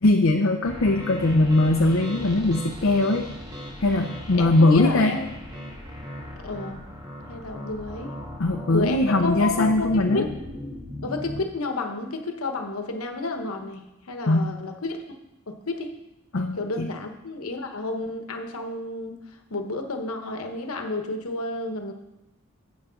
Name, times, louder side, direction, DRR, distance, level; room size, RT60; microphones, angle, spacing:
voice 1, 0.0-3.3 3.8-5.1 8.4-10.3 14.3-14.5 16.3-16.9, left 2 dB, 65° left, 2 dB, 0.6 m, -21 dB
sound 1, 0.6-11.4, left 1 dB, 20° right, 1.5 m, -37 dB
voice 2, 4.3-5.3 6.4-6.9 7.3-8.1 8.7-10.2 11.0-15.2 15.5-15.9 16.6-19.2 19.5-21.9, left 2 dB, 90° left, 5 dB, 1.1 m, -31 dB
8.3 x 6.2 x 5.8 m, 0.93 s
head